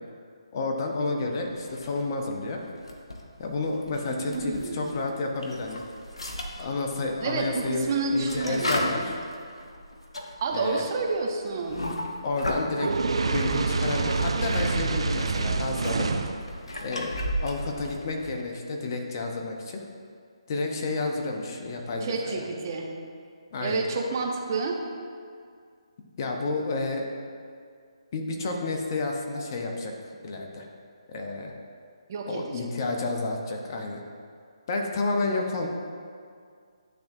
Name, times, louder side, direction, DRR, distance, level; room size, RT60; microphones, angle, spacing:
voice 1, 0.5-2.6 3.4-5.8 6.6-7.8 8.1-9.1 10.5-10.8 12.2-12.9 13.3-16.1 16.8-17.1 17.4-19.8 20.5-22.4 23.5-23.8 26.2-27.1 28.1-29.9 30.2-30.7 31.1-31.5 32.3-34.0 34.7-35.7, left 3 dB, 40° left, 2 dB, 0.8 m, -30 dB
sound 1, 1.6-2.3 2.7-5.0 5.3-12.8 13.5-14.7 15.0-18.4, equal, 80° left, 0.8 m, -35 dB
voice 2, 4.1-5.1 7.2-9.0 10.4-11.9 22.0-22.9 23.6-24.8 32.1-32.7, right 4 dB, 40° right, 2 dB, 0.7 m, -30 dB
Fire, 12.8-16.4, right 4 dB, 70° right, 0.4 m, -26 dB
10.0 x 3.5 x 2.6 m, 2.2 s
figure-of-eight pair, 150°, 3 cm